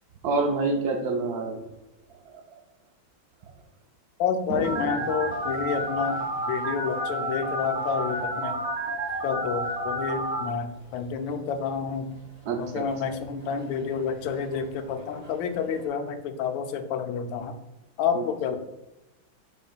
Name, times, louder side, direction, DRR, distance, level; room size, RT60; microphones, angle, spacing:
voice 1, 0.2-1.6 2.5-2.6 12.5-13.2 18.1-18.2, right 3 dB, 70° right, 3 dB, 0.9 m, -27 dB
voice 2, 4.2-8.6 9.2-12.2 12.6-17.6 18.0-18.6, left 6 dB, 80° left, 7 dB, 1.3 m, -29 dB
Toilet flush, 4.4-15.9, right 1 dB, 5° right, 1.2 m, -44 dB
Telephone, 4.6-10.4, right 1 dB, 40° right, 1.7 m, -30 dB
5.1 x 4.4 x 2.3 m, 0.99 s
omnidirectional pair, 2.1 m